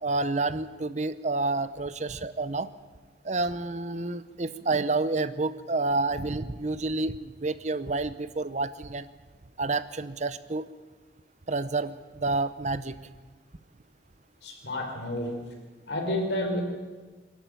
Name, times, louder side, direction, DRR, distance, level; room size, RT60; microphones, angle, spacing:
voice 1, 0.0-2.7 3.2-9.1 9.6-10.7 11.5-13.0, right 3 dB, 40° right, 14 dB, 0.8 m, -29 dB
voice 2, 14.4-15.4 15.9-16.6, left 1 dB, 80° left, 2 dB, 4.9 m, -30 dB
23.5 x 12.5 x 9.1 m, 1.3 s
head